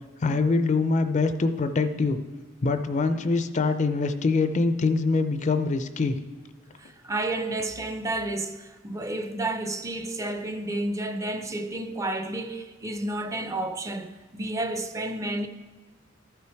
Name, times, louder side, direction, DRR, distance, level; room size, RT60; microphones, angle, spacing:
voice 1, 0.2-2.2 2.6-6.2, left 3 dB, 35° left, 0.5 m, -24 dB
voice 2, 6.8-15.5, right 2 dB, 15° right, 0.5 m, -31 dB
13.0 x 5.7 x 4.6 m
head